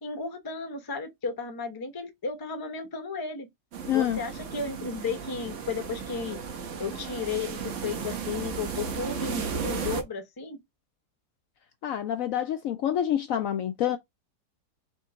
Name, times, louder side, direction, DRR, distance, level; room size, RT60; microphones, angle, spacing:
voice 1, 0.0-3.5 3.9-6.4 6.8-10.6, left 4 dB, 20° left, 0.6 m, -34 dB
sound 1, 3.7-10.0, right 6 dB, 55° right, 1.1 m, -34 dB
voice 2, 3.9-4.2 11.8-14.0, left 10 dB, 70° left, 0.8 m, -27 dB
3.7 x 3.6 x 3.8 m
omnidirectional pair, 1.7 m